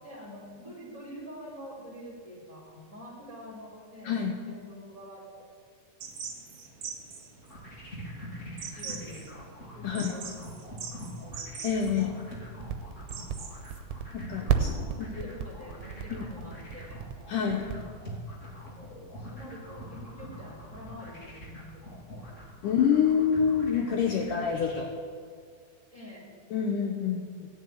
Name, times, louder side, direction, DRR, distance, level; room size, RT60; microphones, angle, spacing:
voice 1, 0.0-5.5 8.6-9.5 9.7-11.5 14.4-17.0 18.6-22.4 25.9-26.3, equal, 10° right, -5 dB, 4.0 m, -46 dB
sound 1, 6.0-13.8, right 6 dB, 55° right, 2.1 m, -43 dB
sound 2, 7.4-24.8, equal, 20° left, 2.5 m, -44 dB
voice 2, 9.8-10.2 11.6-12.2 14.1-14.7 15.0-15.3 16.1-16.2 17.3-17.7 22.6-24.9 26.5-27.5, left 7 dB, 85° left, 2 dB, 1.8 m, -27 dB
sound 3, 12.6-17.8, right 8 dB, 90° right, 3.1 m, -30 dB
16.0 x 7.7 x 9.2 m, 2.1 s
omnidirectional pair, 5.0 m